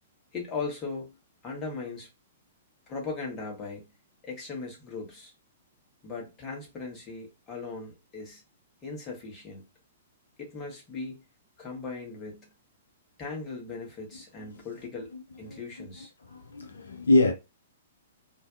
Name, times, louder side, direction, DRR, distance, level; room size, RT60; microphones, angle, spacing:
voice 1, 0.3-2.1 2.9-3.9 4.2-5.3 6.0-8.4 8.8-9.6 10.4-11.2 11.6-12.5 13.2-15.1 15.4-16.1, left 4 dB, 25° left, 1.0 m, -38 dB
voice 2, 15.5-15.9 16.3-17.3, left 2 dB, 70° left, 0.4 m, -25 dB
2.5 x 2.1 x 2.4 m
figure-of-eight pair, 110°, 0 cm